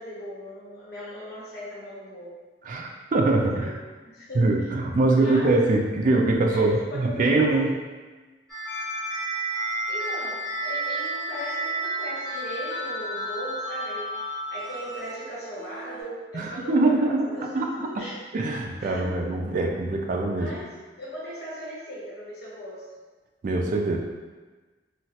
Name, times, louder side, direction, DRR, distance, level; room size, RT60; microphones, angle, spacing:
voice 1, 0.0-2.4 3.4-3.7 4.0-4.6 5.1-5.6 6.5-7.7 9.7-18.2 18.8-19.1 20.3-20.6 21.0-22.9, equal, 65° left, -7 dB, 1.1 m, -38 dB
voice 2, 2.6-3.8 4.3-7.7 16.3-18.0 18.3-20.5 23.4-24.0, right 2 dB, 50° right, 1 dB, 0.3 m, -23 dB
sound 1, 8.5-16.0, right 1 dB, 5° left, 0.8 m, -32 dB
3.1 x 2.3 x 2.7 m, 1.3 s
head